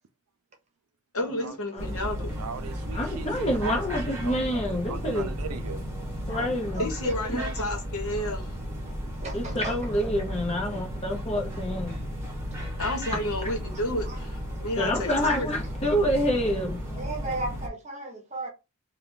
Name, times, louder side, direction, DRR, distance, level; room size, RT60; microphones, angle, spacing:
voice 1, 1.1-2.3 6.8-8.5 12.8-15.5, left 1 dB, 70° left, 1.0 m, -31 dB
sound 1, 1.8-17.7, equal, 10° right, 1.1 m, -34 dB
voice 2, 2.4-5.8, right 6 dB, 80° right, 0.5 m, -38 dB
voice 3, 2.9-5.3 6.3-6.9 7.3-7.4 9.3-11.9 13.4-13.5 14.8-16.8, equal, 30° left, 0.9 m, -27 dB
voice 4, 6.7-7.7 8.2-8.3 9.2-9.7 14.0-14.2 17.0-18.5, right 2 dB, 30° right, 0.9 m, -36 dB
3.2 x 2.3 x 3.7 m
head